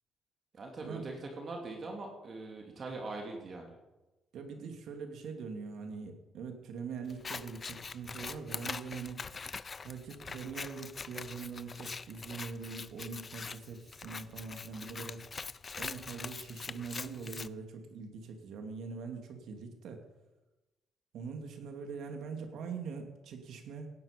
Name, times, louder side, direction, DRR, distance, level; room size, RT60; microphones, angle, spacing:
voice 1, 0.5-3.8, right 2 dB, 45° right, 1 dB, 2.6 m, -42 dB
voice 2, 4.3-9.3 9.8-15.3 15.8-20.0 21.1-23.9, right 5 dB, 75° right, 4 dB, 2.5 m, -43 dB
Scissors, 7.1-17.5, left 5 dB, 35° left, 0.5 m, -43 dB
17.5 x 11.0 x 5.2 m, 1.1 s
cardioid pair, 90°, 0 cm